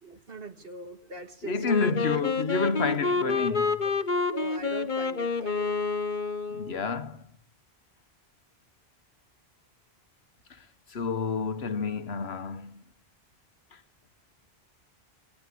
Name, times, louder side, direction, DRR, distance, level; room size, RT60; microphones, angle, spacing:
voice 1, 0.0-2.2 3.1-3.9 4.3-5.8, right 2 dB, 60° right, 2.3 m, -42 dB
voice 2, 1.4-3.8 6.5-7.2 10.9-12.8, left 4 dB, 75° left, 1.4 m, -29 dB
Wind instrument woodwind instrument, 1.6-6.8, left 4 dB, 50° left, 1.4 m, -28 dB
22.0 x 19.0 x 8.4 m
omnidirectional pair, 1.1 m